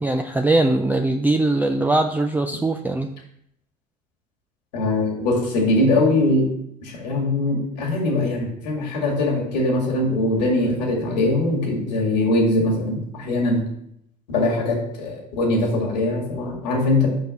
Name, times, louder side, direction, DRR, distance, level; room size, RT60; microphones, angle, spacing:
voice 1, 0.0-3.1, right 2 dB, 10° right, 4 dB, 0.4 m, -21 dB
voice 2, 4.7-6.5 6.8-13.6 14.3-17.1, left 2 dB, 85° left, -1 dB, 2.2 m, -21 dB
5.3 x 4.6 x 6.3 m, 0.75 s
hypercardioid pair, 80°, 21 cm